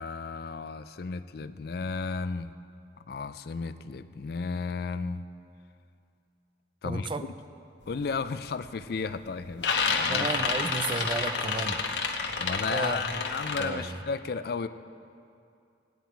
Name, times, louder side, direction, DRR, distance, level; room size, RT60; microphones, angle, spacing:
voice 1, 0.0-2.5 3.1-5.2 6.8-7.3 7.9-10.4 12.4-14.7, left 4 dB, 55° left, 12 dB, 0.4 m, -34 dB
voice 2, 6.8-7.3 10.1-11.8 12.6-13.2 13.6-14.0, right 3 dB, 25° right, 10 dB, 0.4 m, -33 dB
sound 1, 7.9-8.2 8.6-9.1 9.4-13.6, left 5 dB, 70° left, 1.0 m, -29 dB
17.0 x 9.3 x 4.5 m, 2.5 s
head